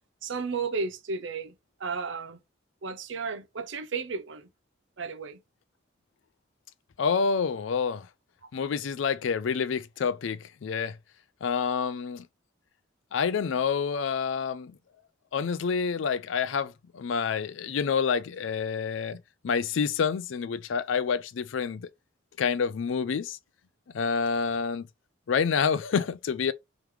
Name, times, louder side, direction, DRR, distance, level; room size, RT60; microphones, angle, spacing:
voice 1, 0.2-1.5 1.8-2.4 2.8-4.5 5.0-5.4, right 4 dB, 70° right, 0.6 m, -33 dB
voice 2, 7.0-8.1 8.5-11.0 11.4-12.3 13.1-14.7 15.3-21.9 22.4-23.4 23.9-24.9 25.3-26.5, left 6 dB, 70° left, 0.4 m, -28 dB
3.2 x 3.0 x 3.5 m
head